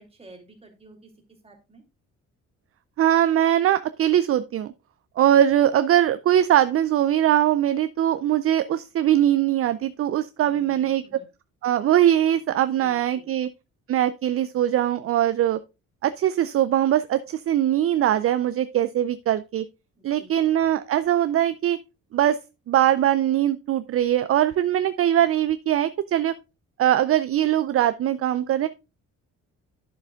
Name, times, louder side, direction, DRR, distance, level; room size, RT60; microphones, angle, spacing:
voice 1, 0.0-1.8 10.4-11.3 12.7-13.4 20.0-20.5, right 1 dB, 20° right, 2.6 m, -51 dB
voice 2, 3.0-4.7 5.2-11.2 11.6-13.5 13.9-15.6 16.0-19.6 20.0-21.8 22.1-22.4 22.7-26.3 26.8-28.7, right 11 dB, 50° right, 0.5 m, -21 dB
10.5 x 6.8 x 2.3 m
cardioid pair, 90°, 30 cm